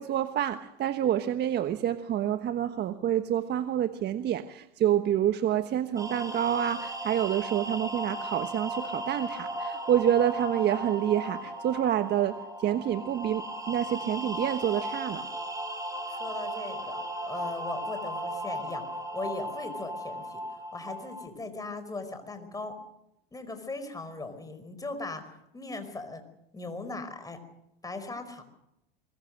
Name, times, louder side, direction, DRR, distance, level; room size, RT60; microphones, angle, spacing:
voice 1, 0.0-15.3, right 10 dB, 35° right, 9 dB, 1.2 m, -28 dB
sound 1, 6.0-21.3, right 1 dB, 10° right, 4.9 m, -36 dB
voice 2, 16.1-18.8 19.1-20.4 20.7-22.7 23.3-25.2 25.5-26.2 26.5-27.4 27.8-28.4, left 3 dB, 10° left, 8 dB, 5.1 m, -38 dB
24.0 x 22.0 x 6.6 m, 0.84 s
hypercardioid pair, 105°, 29 cm